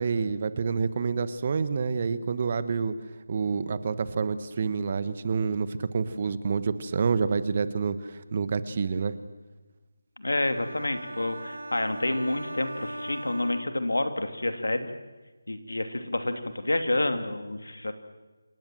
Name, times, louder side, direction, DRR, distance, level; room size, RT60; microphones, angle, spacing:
voice 1, 0.0-3.0 3.3-9.1, right 5 dB, 40° right, 14 dB, 1.3 m, -28 dB
voice 2, 10.2-14.9 15.5-17.9, left 2 dB, 85° left, 8 dB, 2.9 m, -29 dB
sound 1, 10.4-14.3, right 1 dB, 85° right, 1.8 m, -40 dB
28.0 x 18.0 x 7.8 m, 1.2 s
figure-of-eight pair, 165°, 0 cm